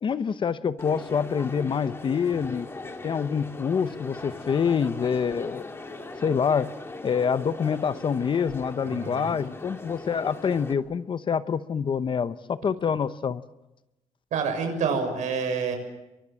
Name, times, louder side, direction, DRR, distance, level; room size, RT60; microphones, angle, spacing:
voice 1, 0.0-2.7 3.0-5.7 6.2-6.7 7.0-13.4, left 6 dB, 40° left, 13 dB, 0.9 m, -26 dB
Crowd, 0.8-10.7, left 2 dB, 20° left, 2.4 m, -40 dB
voice 2, 8.9-9.3 14.3-15.8, right 5 dB, 85° right, 5 dB, 6.6 m, -27 dB
29.5 x 23.5 x 7.6 m, 0.99 s
cardioid pair, 140°, 12 cm